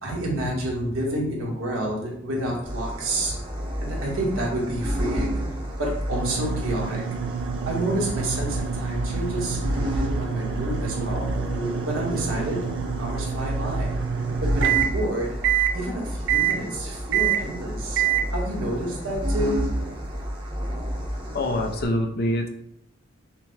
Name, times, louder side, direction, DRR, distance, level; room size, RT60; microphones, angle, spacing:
voice 1, 0.0-3.4 3.8-5.4 5.8-7.0 7.6-11.3 11.9-12.7 13.0-14.0 14.4-15.4 15.7-18.0 18.3-19.6, right 1 dB, 80° right, -2 dB, 1.3 m, -29 dB
sound 1, 2.7-21.8, equal, 25° right, 0.8 m, -30 dB
sound 2, 6.1-14.9 15.4-15.8 16.3-16.6 17.1-17.5 18.0-18.3, right 9 dB, 60° right, 0.4 m, -27 dB
sound 3, 10.0-14.5 14.8-14.9, right 1 dB, 20° left, 0.9 m, -40 dB
voice 2, 21.3-22.5, left 1 dB, 50° left, 4 dB, 0.6 m, -25 dB
5.9 x 2.2 x 3.4 m, 0.75 s
head